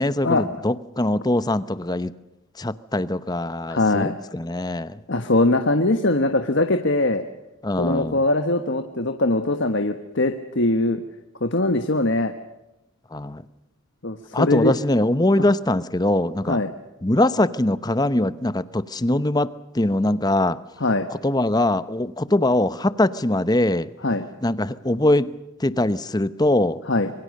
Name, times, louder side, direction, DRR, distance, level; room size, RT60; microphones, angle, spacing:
voice 1, 0.0-2.1 2.6-5.0 7.6-8.2 13.1-13.4 14.3-16.6 17.0-19.5 19.7-20.6 21.2-23.9 24.4-25.3 25.6-26.8, left 1 dB, 20° left, 15 dB, 0.8 m, -22 dB
voice 2, 3.7-4.1 5.1-7.2 7.8-11.0 11.4-12.3 14.0-14.8 15.4-15.5 16.5-16.7 20.8-21.1 24.0-24.2 26.9-27.1, left 2 dB, 55° left, 7 dB, 1.5 m, -21 dB
26.5 x 23.0 x 6.6 m, 0.94 s
head